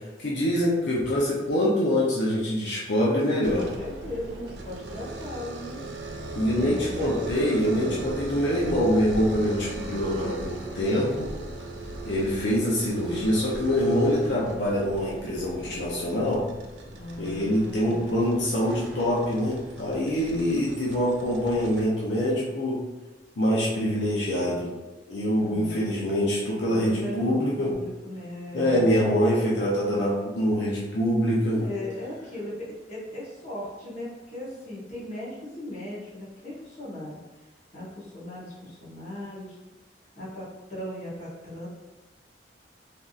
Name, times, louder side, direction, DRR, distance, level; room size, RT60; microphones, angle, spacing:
voice 1, 0.2-3.7 6.3-11.3 12.0-16.5 17.2-22.8 23.4-24.7 25.1-27.7 28.5-31.6, equal, 75° left, -5 dB, 0.6 m, -25 dB
sound 1, 3.4-21.9, right 2 dB, 75° right, 0.4 m, -38 dB
voice 2, 3.5-5.8 6.5-7.2 7.7-8.0 16.9-18.1 25.4-25.9 26.6-28.9 31.5-37.2 37.7-39.6 40.1-41.7, left 1 dB, 40° left, -7 dB, 1.1 m, -38 dB
3.4 x 2.6 x 2.4 m, 1.1 s
head